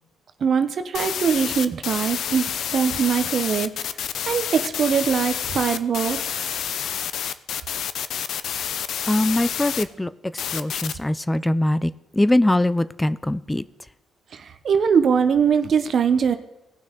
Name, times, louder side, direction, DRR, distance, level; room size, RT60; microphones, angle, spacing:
voice 1, 0.4-3.7 4.3-6.2 6.5-6.6 14.3-16.4, right 6 dB, 55° right, 9 dB, 0.8 m, -22 dB
sound 1, 0.9-9.8 10.4-10.9, left 9 dB, 70° left, 0.6 m, -28 dB
voice 2, 9.1-13.6, left 1 dB, 10° left, 16 dB, 0.4 m, -22 dB
18.0 x 6.1 x 3.8 m, 0.97 s
cardioid pair, 90°, 0 cm